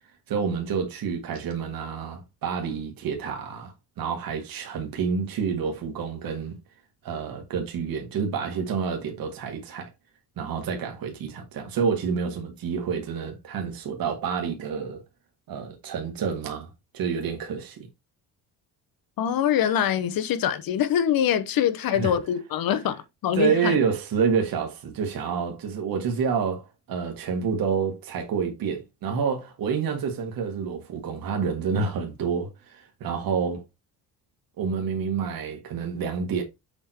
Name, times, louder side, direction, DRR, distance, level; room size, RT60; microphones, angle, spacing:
voice 1, 0.3-6.6 7.0-9.9 10.4-15.0 15.5-17.9 21.9-22.1 23.3-33.6 34.6-36.4, right 6 dB, 65° right, 1.9 m, -28 dB
voice 2, 19.2-23.7, left 9 dB, 65° left, 1.0 m, -24 dB
7.0 x 3.7 x 4.4 m
cardioid pair, 105°, 38 cm